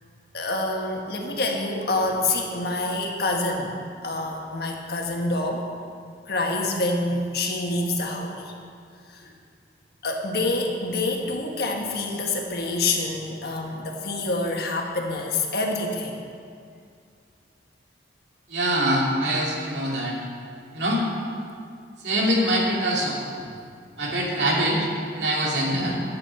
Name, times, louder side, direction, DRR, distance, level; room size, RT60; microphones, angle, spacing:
voice 1, 0.3-3.7 4.0-5.7 6.3-8.5 9.1-9.3 10.0-16.2 25.6-26.0, left 2 dB, 60° left, 1 dB, 1.5 m, -27 dB
voice 2, 18.5-20.2 20.7-21.0 22.0-23.2 24.0-24.9 25.1-26.0, right 1 dB, 80° right, -3 dB, 2.5 m, -24 dB
14.0 x 9.7 x 4.4 m, 2.3 s
head